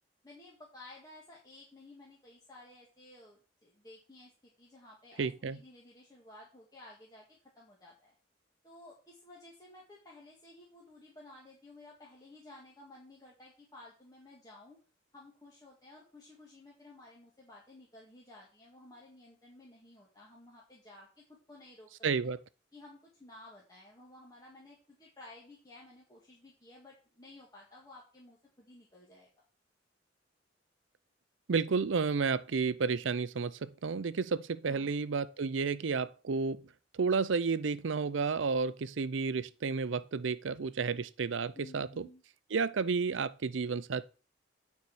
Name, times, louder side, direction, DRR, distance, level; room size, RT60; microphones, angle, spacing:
voice 1, 0.2-8.1 8.6-14.8 15.1-21.9 22.7-29.3 34.6-34.9 41.6-42.2, left 2 dB, 20° left, 1.9 m, -55 dB
voice 2, 5.2-5.6 22.0-22.4 31.5-36.7 36.9-41.9 42.5-44.0, right 5 dB, 90° right, 0.6 m, -31 dB
9.3 x 4.7 x 7.0 m
head